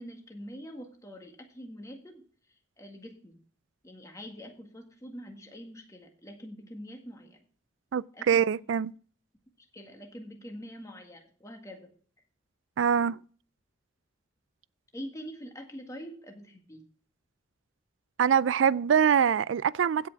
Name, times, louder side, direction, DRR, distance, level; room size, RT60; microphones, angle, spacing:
voice 1, 0.0-2.2 2.8-3.4 3.8-7.4 8.1-8.7 9.7-11.9 14.9-16.8, equal, 15° left, 1.7 m, -44 dB
voice 2, 7.9-8.9 12.8-13.2 18.2-20.1, right 7 dB, 70° right, 0.4 m, -24 dB
16.0 x 5.5 x 4.6 m
head